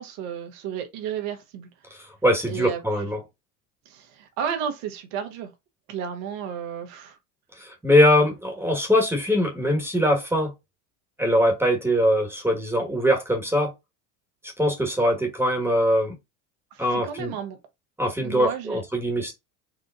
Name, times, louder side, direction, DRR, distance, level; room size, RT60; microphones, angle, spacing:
voice 1, 0.0-1.7 2.5-3.1 3.8-5.5 5.9-7.2 16.7-17.6 18.2-18.8, right 8 dB, 65° right, 1.4 m, -33 dB
voice 2, 2.2-3.2 7.8-10.5 11.2-13.7 14.6-16.1 16.8-17.3 18.0-19.3, equal, 5° right, 1.5 m, -22 dB
5.0 x 2.5 x 2.5 m
hypercardioid pair, 90°, 43 cm